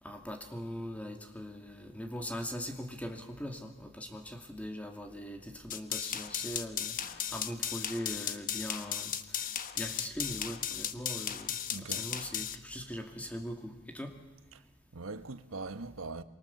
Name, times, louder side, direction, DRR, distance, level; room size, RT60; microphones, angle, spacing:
voice 1, 0.0-14.1, equal, 5° left, 2.4 m, -41 dB
sound 1, 5.7-12.6, left 9 dB, 40° left, 1.1 m, -36 dB
voice 2, 11.7-12.1 14.5-14.6 14.9-16.2, right 3 dB, 85° right, 1.2 m, -41 dB
26.0 x 24.0 x 7.2 m
head